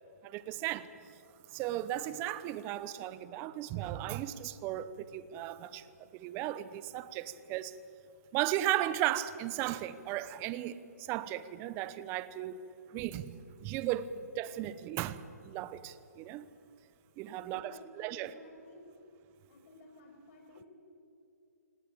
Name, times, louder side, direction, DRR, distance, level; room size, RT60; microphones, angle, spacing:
voice 1, 0.2-0.9 1.5-5.9 6.1-7.7 8.3-13.4 13.6-16.5 17.2-18.3, right 13 dB, 25° right, 0.9 m, -36 dB
voice 2, 17.2-18.8 19.5-20.7, left 1 dB, 45° left, 6.6 m, -55 dB
26.0 x 18.0 x 8.6 m
hypercardioid pair, 145°, 9 cm